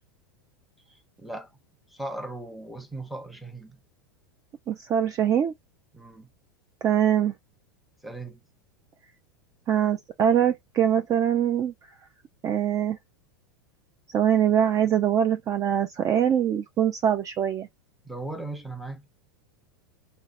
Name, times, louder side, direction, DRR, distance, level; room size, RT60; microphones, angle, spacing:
voice 1, 0.9-1.5 1.9-3.8 5.9-6.3 8.0-8.4 18.0-19.1, right 2 dB, ahead, 0.7 m, -38 dB
voice 2, 4.7-5.5 6.8-7.3 9.7-11.7 12.4-13.0 14.1-17.7, right 9 dB, 30° right, 0.3 m, -23 dB
2.8 x 2.0 x 2.5 m
hypercardioid pair, 100°, 12 cm